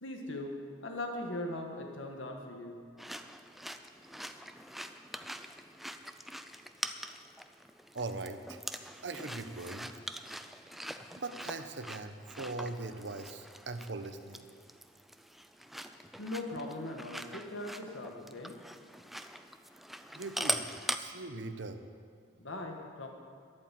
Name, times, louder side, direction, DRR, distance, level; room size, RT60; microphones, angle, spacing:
voice 1, 0.0-2.8 16.2-18.5 22.4-23.1, left 1 dB, 90° left, 2 dB, 1.8 m, -40 dB
sound 1, 3.0-21.0, equal, ahead, 0.4 m, -43 dB
voice 2, 7.9-8.6 9.0-9.9 11.2-14.5 20.1-20.7 21.0-21.8, right 3 dB, 65° right, 8 dB, 1.0 m, -40 dB
13.0 x 11.0 x 7.7 m, 2.2 s
head